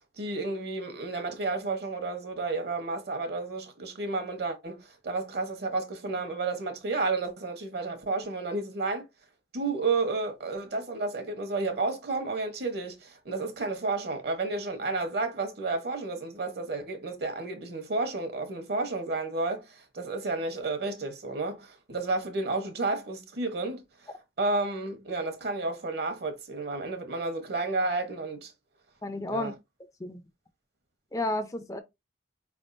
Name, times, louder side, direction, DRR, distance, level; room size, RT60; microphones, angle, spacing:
voice 1, 0.2-9.0 9.5-23.8 24.4-28.5 29.3-29.5, right 3 dB, 60° right, 1.1 m, -31 dB
voice 2, 29.0-29.5 30.0-30.2 31.1-31.8, left 1 dB, 20° left, 0.4 m, -31 dB
4.5 x 3.5 x 2.6 m
head